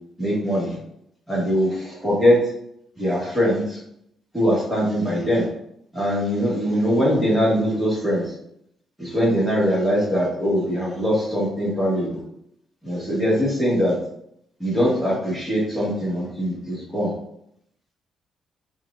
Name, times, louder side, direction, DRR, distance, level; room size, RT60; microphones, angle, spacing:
voice 1, 0.2-0.7 1.3-1.7 2.0-2.4 3.0-3.6 4.3-5.4 5.9-8.2 9.0-12.2 12.8-13.9 14.6-17.1, equal, 5° right, -6 dB, 1.2 m, -21 dB
5.7 x 2.2 x 2.4 m, 0.74 s
cardioid pair, 180°, 0 cm